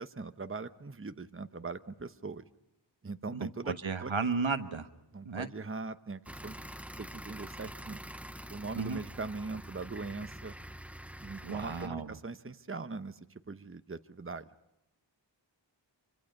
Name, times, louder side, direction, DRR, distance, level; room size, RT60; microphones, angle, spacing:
voice 1, 0.0-2.4 3.0-4.1 5.1-6.6 7.0-8.0 8.5-10.5 11.2-14.5, right 3 dB, 30° right, 11 dB, 0.9 m, -41 dB
voice 2, 3.3-4.9 5.2-5.5 8.8-9.0 11.4-12.1, right 4 dB, 80° right, 9 dB, 1.4 m, -34 dB
sound 1, 6.3-11.9, equal, 5° right, 0.7 m, -46 dB
25.5 x 25.0 x 5.4 m, 0.95 s
wide cardioid pair, 45°, 46 cm